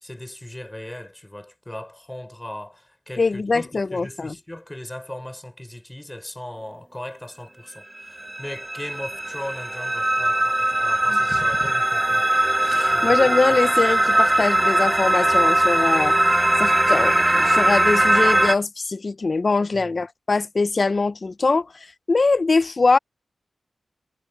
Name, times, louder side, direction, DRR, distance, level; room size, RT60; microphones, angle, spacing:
voice 1, 0.0-12.2 12.9-13.2 19.7-20.0, left 1 dB, 10° left, 3.6 m, -38 dB
voice 2, 3.2-4.3 11.1-11.4 12.6-16.2 16.6-23.0, left 3 dB, 45° left, 0.6 m, -22 dB
sound 1, 8.0-18.6, right 1 dB, 15° right, 0.6 m, -20 dB
wide cardioid pair, 100°, 0 cm